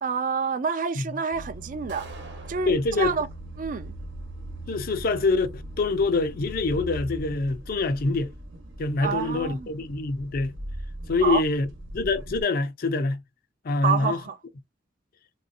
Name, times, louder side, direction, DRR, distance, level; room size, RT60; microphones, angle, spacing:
voice 1, 0.0-2.1 2.5-3.3 3.6-3.9 9.0-9.7 11.2-11.4 13.8-14.4, right 5 dB, 45° right, 0.4 m, -28 dB
sound 1, 1.3-12.4, equal, 90° right, 1.0 m, -40 dB
sound 2, 1.9-2.9, right 2 dB, 65° right, 1.0 m, -44 dB
voice 2, 2.7-3.1 4.7-8.3 8.8-10.5 11.1-11.7 11.9-13.2 13.6-14.2, left 3 dB, 50° left, 0.4 m, -25 dB
3.2 x 2.6 x 2.6 m
head